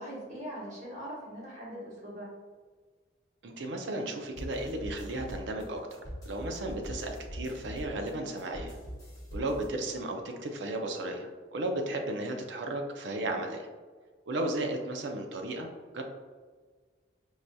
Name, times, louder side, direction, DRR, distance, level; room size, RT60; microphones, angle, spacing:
voice 1, 0.0-2.3 13.1-13.4, equal, 40° right, -7 dB, 1.4 m, -41 dB
voice 2, 3.4-6.0 6.3-8.8 9.3-13.7 14.3-15.7 15.9-16.0, right 1 dB, 75° right, 4 dB, 0.5 m, -34 dB
sound 1, 4.4-9.7, equal, 20° left, 0.9 m, -42 dB
4.7 x 2.6 x 2.2 m, 1.5 s
head